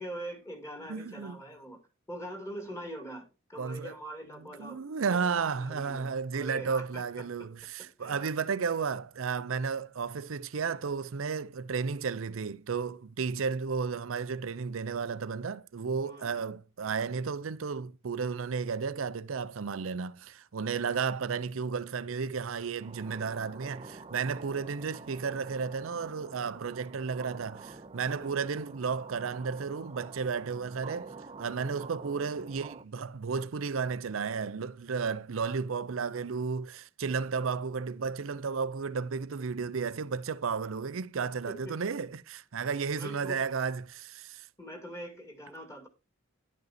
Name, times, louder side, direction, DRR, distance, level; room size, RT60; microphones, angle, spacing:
voice 1, 0.0-1.8 2.1-4.8 5.1-6.1 6.3-7.3 7.8-8.2 16.0-16.4 20.8-20.9 28.1-28.3 41.5-41.7 43.0-43.4 44.6-45.9, right 1 dB, 15° left, 2.2 m, -43 dB
voice 2, 0.9-1.4 3.6-3.9 4.6-31.1 31.4-44.5, right 5 dB, 75° right, 0.5 m, -33 dB
sound 1, 22.8-32.8, right 3 dB, 25° right, 0.5 m, -48 dB
10.5 x 5.3 x 4.1 m
head